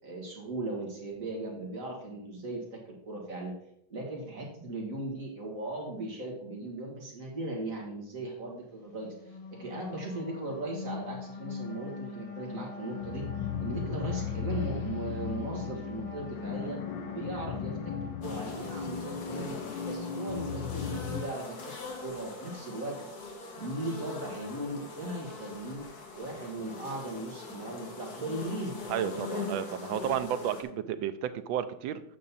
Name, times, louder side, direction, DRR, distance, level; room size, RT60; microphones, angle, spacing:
voice 1, 0.0-3.5 3.9-13.2 13.6-16.8 17.1-19.6 19.8-21.6 22.0-23.0 23.5-25.9 26.1-28.8, right 2 dB, 45° right, -2 dB, 2.3 m, -38 dB
sound 1, 8.9-19.4, left 5 dB, 25° left, 0.8 m, -42 dB
sound 2, 12.5-21.2, left 7 dB, 80° left, 1.4 m, -37 dB
sound 3, 18.2-30.6, left 3 dB, 55° left, 1.8 m, -42 dB
voice 2, 28.9-32.0, right 10 dB, 80° right, 11 dB, 1.4 m, -32 dB
8.7 x 6.4 x 4.1 m, 0.75 s
omnidirectional pair, 2.1 m